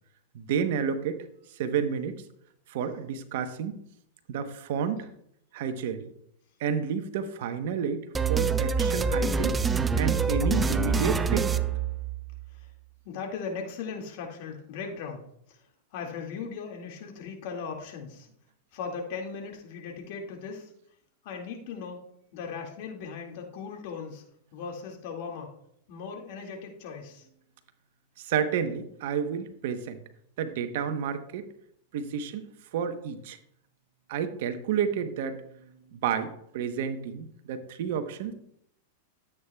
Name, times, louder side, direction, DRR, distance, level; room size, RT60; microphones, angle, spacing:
voice 1, 0.3-1.2 1.5-2.2 2.7-3.8 4.3-5.1 5.5-6.1 6.6-9.6 10.0-11.5 28.2-30.0 30.4-31.5 31.9-32.5 32.7-33.4 34.1-35.5 35.9-38.3, right 7 dB, 65° right, 9 dB, 1.0 m, -30 dB
sound 1, 8.1-12.5, right 5 dB, 15° right, 0.4 m, -26 dB
voice 2, 13.1-15.6 15.9-18.3 18.7-20.7 21.2-22.0 22.3-24.2 24.5-25.5 25.9-27.3, left 5 dB, 60° left, 1 dB, 2.1 m, -38 dB
13.0 x 8.4 x 2.3 m, 0.74 s
hypercardioid pair, 120°, 0 cm